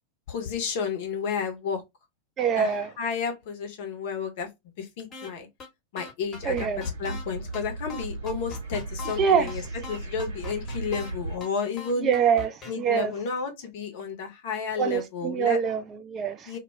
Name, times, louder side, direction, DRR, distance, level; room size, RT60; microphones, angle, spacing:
voice 1, 0.3-1.8 2.5-4.5 4.8-5.5 5.9-6.7 7.0-9.6 9.9-12.1 12.7-15.6 16.5-16.6, left 5 dB, 50° left, 0.6 m, -31 dB
voice 2, 2.4-2.9 6.4-6.8 9.2-9.5 12.0-13.1 14.8-16.5, right 7 dB, 30° right, 0.4 m, -25 dB
sound 1, 5.1-5.3 5.6-5.7 6.0-7.2 7.5-7.6 7.9-9.2 9.5-9.6 9.8-11.1 11.4-11.5 11.8-12.7, left 5 dB, 25° left, 0.9 m, -40 dB
sound 2, 6.3-11.4, right 2 dB, 70° right, 0.9 m, -36 dB
2.2 x 2.1 x 3.2 m
figure-of-eight pair, 90°, 0 cm